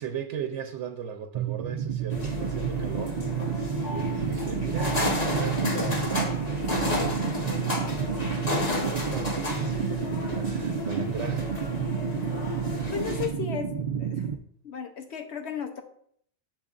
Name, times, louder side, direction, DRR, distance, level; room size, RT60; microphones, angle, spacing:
voice 1, 0.0-6.4 6.9-7.8 8.1-11.5, right 7 dB, 90° right, 0.9 m, -37 dB
sound 1, 1.3-14.3, right 7 dB, 55° right, 0.5 m, -30 dB
sound 2, 2.1-13.3, left 2 dB, 35° left, 1.5 m, -32 dB
voice 2, 12.9-13.7 14.0-14.2 14.6-15.8, left 7 dB, 70° left, 1.2 m, -34 dB
10.5 x 6.4 x 2.5 m
omnidirectional pair, 1.2 m